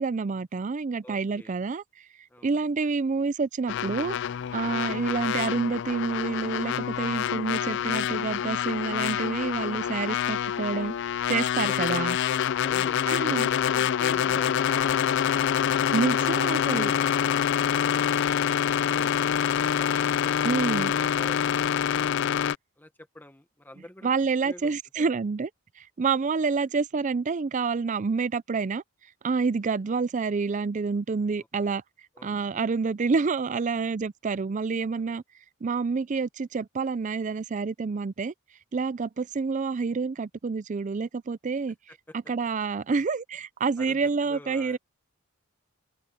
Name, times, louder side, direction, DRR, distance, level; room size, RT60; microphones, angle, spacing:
voice 1, 0.0-1.8 2.4-4.2 4.5-11.0 11.3-12.2 13.1-13.5 15.9-16.9 20.4-20.9 24.0-25.5 25.8-28.8 29.2-31.8 32.2-35.2 35.6-38.3 38.7-41.8 42.3-44.8, right 4 dB, 35° right, 0.4 m, -28 dB
voice 2, 1.0-1.5 2.3-2.7 22.8-24.1 24.4-25.0 31.6-31.8 32.1-32.4 34.9-35.2 41.9-42.1 43.8-44.8, left 1 dB, 10° left, 1.2 m, -47 dB
sound 1, 3.7-22.6, left 9 dB, 50° left, 0.3 m, -26 dB
open air
head